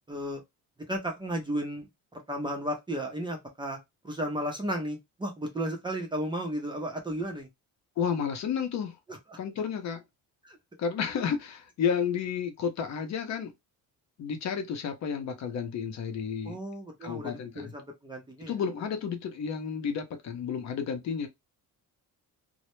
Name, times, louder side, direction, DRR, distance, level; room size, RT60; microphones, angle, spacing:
voice 1, 0.1-0.4 0.9-1.9 2.3-3.8 4.0-7.5 9.1-9.2 10.4-10.6 16.5-18.5, right 1 dB, 15° right, 0.5 m, -34 dB
voice 2, 8.0-9.0 9.4-10.0 10.8-13.5 14.2-16.6 17.0-17.7 18.4-21.3, left 7 dB, 50° left, 0.6 m, -31 dB
2.0 x 2.0 x 2.9 m
cardioid pair, 125°, 35 cm